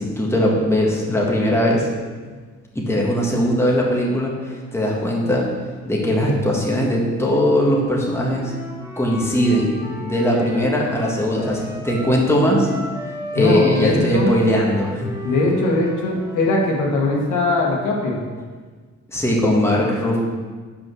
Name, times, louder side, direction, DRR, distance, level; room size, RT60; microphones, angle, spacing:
voice 1, 0.0-1.9 2.7-5.5 5.8-8.5 9.0-12.7 13.3-15.1 19.1-20.2, equal, 10° left, -3 dB, 1.7 m, -20 dB
Wind instrument woodwind instrument, 8.2-16.7, left 1 dB, 15° right, 2.5 m, -34 dB
voice 2, 13.3-14.3 15.2-18.2, left 2 dB, 85° left, -2 dB, 1.7 m, -20 dB
5.7 x 5.4 x 6.3 m, 1.5 s
cardioid pair, 90°, 30 cm